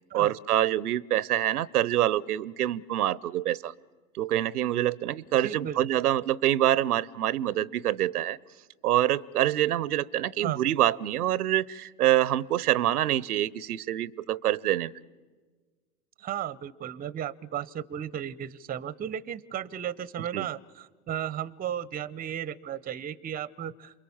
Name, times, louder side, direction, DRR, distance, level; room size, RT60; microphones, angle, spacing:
voice 1, 0.1-3.7 4.1-8.4 8.8-14.9 20.3-20.5, right 13 dB, 85° right, 23 dB, 0.7 m, -26 dB
voice 2, 5.4-5.8 10.4-10.6 16.2-24.0, right 10 dB, 20° right, 22 dB, 0.7 m, -35 dB
28.5 x 22.5 x 7.2 m, 1.4 s
hypercardioid pair, 95°, 44 cm